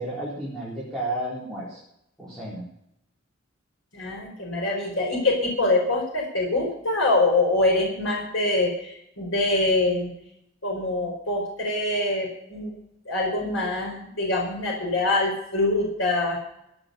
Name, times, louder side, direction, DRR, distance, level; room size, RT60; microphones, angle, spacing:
voice 1, 0.0-1.8 2.2-2.6, right 1 dB, 5° left, -8 dB, 4.0 m, -32 dB
voice 2, 3.9-10.1 10.6-12.7 13.0-16.4, left 2 dB, 90° left, 0 dB, 5.0 m, -24 dB
15.5 x 8.8 x 6.9 m, 0.76 s
head